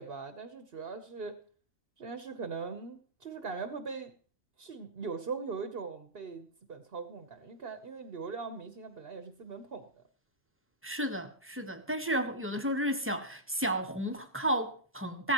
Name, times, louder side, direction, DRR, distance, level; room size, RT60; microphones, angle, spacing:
voice 1, 0.0-1.3 2.0-4.1 4.6-9.9, right 4 dB, 45° right, 1.2 m, -40 dB
voice 2, 10.8-15.3, right 1 dB, 10° right, 1.0 m, -32 dB
16.0 x 14.5 x 3.0 m
omnidirectional pair, 1.5 m